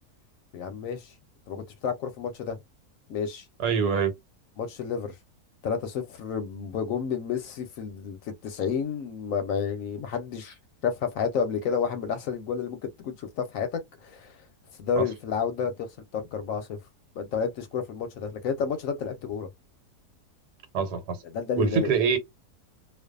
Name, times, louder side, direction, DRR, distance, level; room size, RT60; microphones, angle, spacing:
voice 1, 0.5-1.1 1.5-2.6 3.1-3.5 4.6-5.1 5.6-10.6 10.8-14.4 14.8-16.8 17.2-19.5 21.2-21.9, left 6 dB, 70° left, 0.9 m, -30 dB
voice 2, 3.6-4.1 15.0-15.1 20.7-21.2 21.6-22.2, right 6 dB, 90° right, 1.3 m, -24 dB
2.5 x 2.3 x 2.3 m
omnidirectional pair, 1.7 m